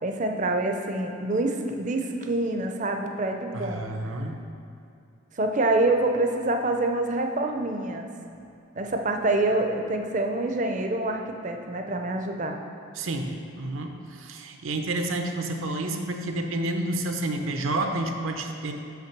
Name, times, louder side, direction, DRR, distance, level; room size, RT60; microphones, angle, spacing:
voice 1, 0.0-3.9 5.4-8.1 8.7-12.6, right 2 dB, 35° right, 4 dB, 0.5 m, -26 dB
voice 2, 3.5-4.4 13.0-18.7, right 2 dB, 75° right, 4 dB, 0.7 m, -30 dB
5.8 x 5.8 x 5.9 m, 2.5 s
head